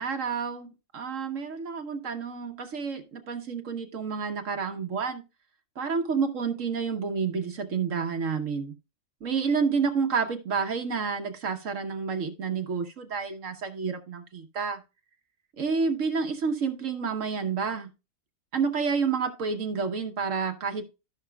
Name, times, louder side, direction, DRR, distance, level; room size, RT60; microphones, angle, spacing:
voice 1, 0.0-5.2 5.8-8.7 9.2-14.8 15.6-17.9 18.5-20.9, right 5 dB, 70° right, 4 dB, 1.4 m, -29 dB
15.0 x 5.8 x 2.3 m, 0.28 s
omnidirectional pair, 1.4 m